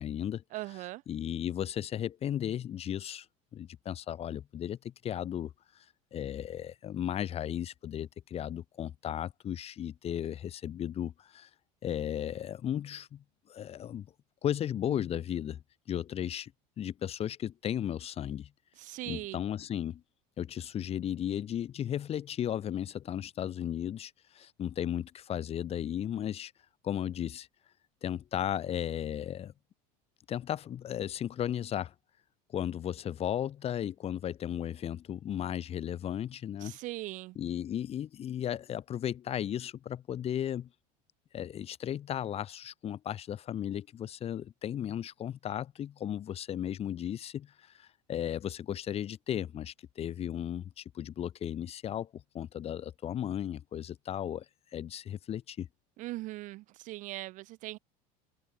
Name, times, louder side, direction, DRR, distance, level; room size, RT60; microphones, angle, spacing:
voice 1, 0.0-0.4 1.1-3.3 3.5-5.8 6.1-11.5 11.8-14.1 14.4-15.6 15.9-16.5 16.8-18.5 19.1-20.0 20.4-26.5 26.8-27.5 28.0-29.5 30.3-31.9 32.5-36.7 37.4-40.7 41.3-54.5 54.7-55.7, left 10 dB, 35° left, 1.9 m, -35 dB
voice 2, 0.5-1.0 18.8-19.4 36.6-37.4 56.0-57.8, right 18 dB, 45° right, 0.4 m, -40 dB
supercardioid pair, 130°, 18 cm